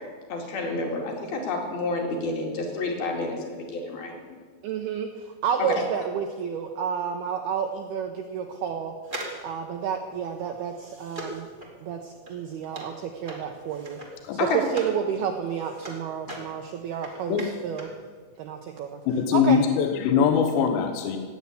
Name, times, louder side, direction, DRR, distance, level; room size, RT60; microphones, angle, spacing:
voice 1, 0.0-4.2 5.8-5.9 14.4-14.6, left 3 dB, 55° left, 2 dB, 3.9 m, -29 dB
voice 2, 4.6-8.9 9.4-11.5 11.8-14.0 14.5-17.9 18.4-19.0 19.3-19.6, right 8 dB, 85° right, 4 dB, 2.2 m, -30 dB
sound 1, 9.0-15.0 15.3-18.0 18.3-18.4, right 1 dB, 65° right, 0.5 m, -41 dB
voice 3, 19.1-21.2, left 7 dB, 80° left, 5 dB, 3.7 m, -22 dB
17.0 x 8.4 x 10.0 m, 1.5 s
omnidirectional pair, 5.7 m